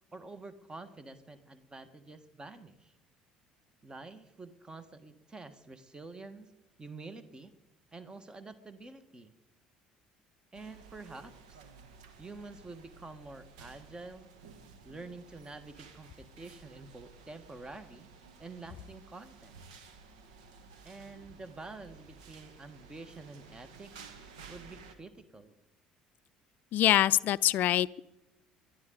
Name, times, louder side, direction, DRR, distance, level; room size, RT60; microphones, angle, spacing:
voice 1, 0.1-2.9 3.8-6.5 6.8-7.5 7.9-9.3 10.5-11.6 12.2-14.3 14.8-18.1 18.4-19.5 20.8-23.9 24.5-25.5, right 3 dB, 20° right, 12 dB, 1.5 m, -48 dB
sound 1, 10.5-24.9, right 5 dB, 70° right, 1.4 m, -54 dB
voice 2, 26.7-28.0, left 13 dB, 50° left, 19 dB, 0.4 m, -25 dB
30.0 x 11.5 x 3.9 m, 0.98 s
figure-of-eight pair, 55°, 4 cm